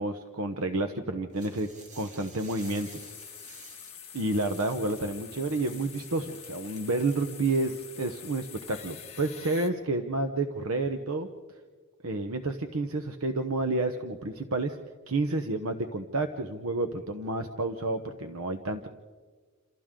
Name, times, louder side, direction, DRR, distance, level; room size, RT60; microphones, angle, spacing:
voice 1, 0.0-2.9 4.1-11.3 12.0-14.8 15.1-18.9, right 2 dB, 80° right, 7 dB, 1.0 m, -30 dB
sound 1, 1.3-7.8, right 3 dB, 35° right, 2.4 m, -53 dB
sound 2, 2.6-9.7, left 9 dB, 30° left, 1.9 m, -46 dB
28.5 x 27.5 x 3.8 m, 1.5 s
head